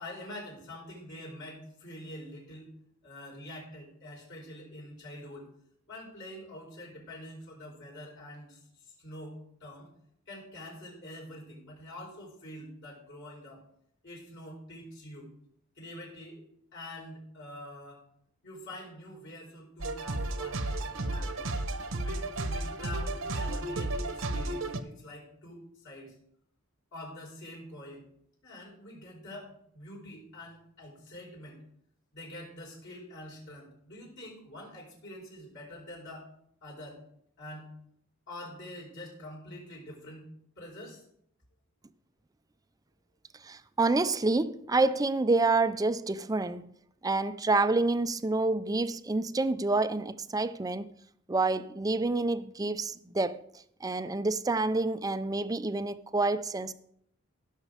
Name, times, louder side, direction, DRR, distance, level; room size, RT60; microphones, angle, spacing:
voice 1, 0.0-2.7 3.0-5.5 5.9-8.6 9.0-9.9 10.3-13.6 14.0-15.3 15.8-16.4 16.7-18.0 18.4-21.5 22.0-26.1 26.9-28.0 28.4-31.6 32.1-36.3 36.6-37.0 37.4-37.7 38.3-40.3 40.6-41.0, left 1 dB, 60° left, 4.4 m, -46 dB
sound 1, 19.8-24.8, right 2 dB, 70° right, 1.0 m, -33 dB
voice 2, 43.4-46.7 47.0-50.9 51.3-53.4 53.8-56.7, right 3 dB, 15° right, 0.4 m, -28 dB
15.5 x 6.5 x 4.9 m
head